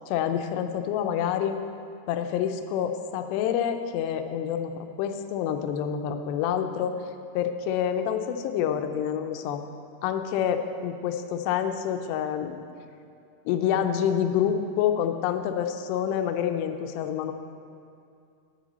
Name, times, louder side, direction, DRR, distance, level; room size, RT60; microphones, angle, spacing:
voice 1, 0.1-1.6 2.1-7.0 7.3-9.6 10.0-12.6 13.5-17.3, left 9 dB, 90° left, 7 dB, 2.8 m, -27 dB
10.0 x 9.1 x 4.0 m, 2.4 s
omnidirectional pair, 4.8 m